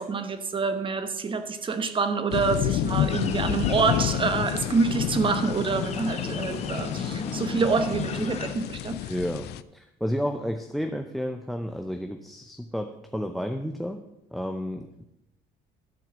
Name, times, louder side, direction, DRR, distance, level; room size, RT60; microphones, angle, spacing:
voice 1, 0.0-9.0, right 4 dB, 30° right, 9 dB, 1.1 m, -27 dB
sound 1, 2.3-9.6, left 12 dB, 75° left, 0.5 m, -30 dB
sound 2, 3.1-8.5, left 5 dB, 40° left, 1.1 m, -34 dB
voice 2, 9.1-14.0 14.3-15.0, equal, ahead, 6 dB, 0.6 m, -31 dB
12.0 x 4.6 x 7.3 m, 0.88 s
cardioid pair, 110°, 17 cm